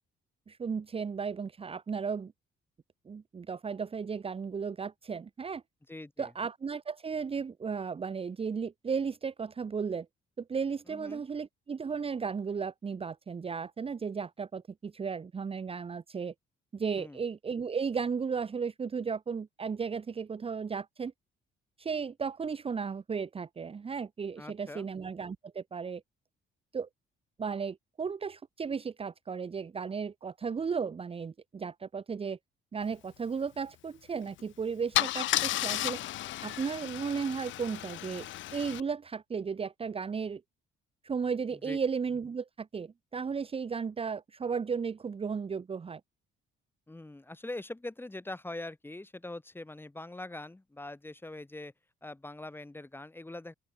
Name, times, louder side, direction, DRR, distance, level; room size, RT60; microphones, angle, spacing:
voice 1, 0.5-2.3 3.1-5.6 6.2-10.1 10.4-16.3 16.7-21.1 21.8-26.0 26.7-26.9 27.4-32.4 32.7-36.0 36.4-38.3 38.5-40.4 41.0-46.0, right 6 dB, 30° right, 1.1 m, -35 dB
voice 2, 5.9-6.3 10.9-11.2 17.0-17.2 24.4-24.9 41.5-41.8 46.9-51.7 52.0-53.5, left 2 dB, 10° left, 3.7 m, -43 dB
Car / Engine starting / Idling, 34.2-34.4 34.9-38.8, left 14 dB, 70° left, 0.6 m, -33 dB
open air
cardioid pair, 130°, 20 cm